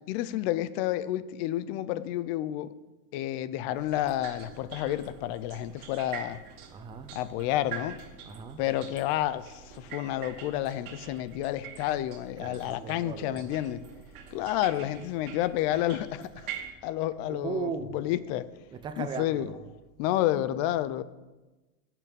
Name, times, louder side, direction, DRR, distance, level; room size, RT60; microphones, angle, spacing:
voice 1, 0.0-2.7 3.1-6.4 7.1-8.0 8.6-13.8 14.3-16.3 16.8-18.5 19.0-19.5 20.0-21.0, left 13 dB, 40° left, 0.5 m, -30 dB
sound 1, 3.7-16.7, right 8 dB, 65° right, 1.9 m, -45 dB
voice 2, 6.7-7.1 8.2-8.6 12.4-13.5 17.3-18.0 18.7-19.6, right 6 dB, 10° right, 0.4 m, -37 dB
10.5 x 6.0 x 8.3 m
supercardioid pair, 140°, 45 cm